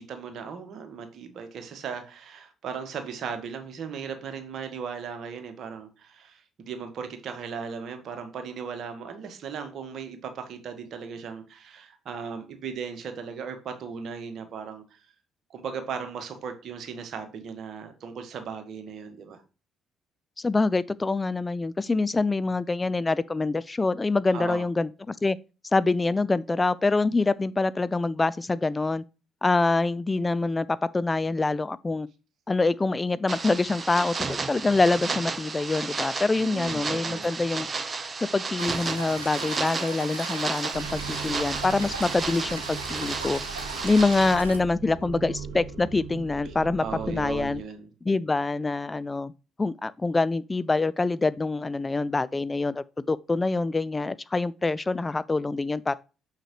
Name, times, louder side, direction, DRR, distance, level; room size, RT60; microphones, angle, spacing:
voice 1, 0.0-15.0 15.5-19.4 24.3-24.7 36.4-37.3 46.8-47.9, right 6 dB, 55° right, 1.5 m, -37 dB
voice 2, 20.4-25.4 25.7-29.0 29.4-32.1 32.5-37.7 38.3-43.4 43.8-47.6 48.1-49.3 49.6-55.9, left 3 dB, 25° left, 0.3 m, -25 dB
sound 1, 33.3-44.4, right 4 dB, 35° right, 0.8 m, -33 dB
sound 2, 38.6-44.6, right 3 dB, 90° right, 0.7 m, -39 dB
sound 3, 40.7-47.6, right 5 dB, 75° right, 1.4 m, -39 dB
6.5 x 6.2 x 3.1 m
figure-of-eight pair, 45°, 0 cm